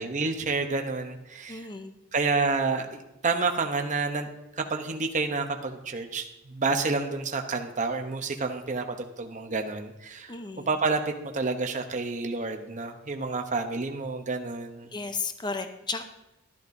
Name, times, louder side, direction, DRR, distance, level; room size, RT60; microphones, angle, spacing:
voice 1, 0.0-1.7 2.1-4.3 4.6-10.3 10.7-14.9, right 4 dB, 35° right, 4 dB, 0.8 m, -29 dB
voice 2, 1.5-1.9 10.3-10.7 14.9-16.0, left 4 dB, 20° left, 8 dB, 0.6 m, -34 dB
13.5 x 11.0 x 2.6 m, 0.93 s
head